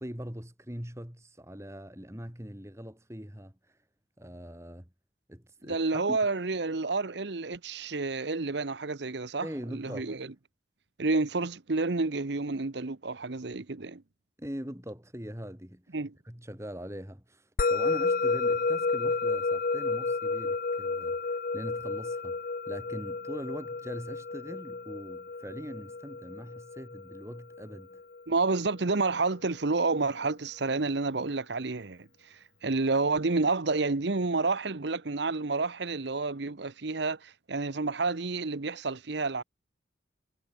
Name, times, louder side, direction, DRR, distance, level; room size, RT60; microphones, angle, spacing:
voice 1, 0.0-3.5 4.2-4.9 5.3-6.2 9.4-10.1 14.4-15.8 16.3-22.4 22.7-28.0, equal, 15° right, 2.6 m, -42 dB
voice 2, 5.6-10.3 11.0-14.0 15.9-16.1 28.3-39.4, right 3 dB, 65° right, 0.9 m, -30 dB
Musical instrument, 17.6-28.2, left 3 dB, 45° left, 0.6 m, -31 dB
head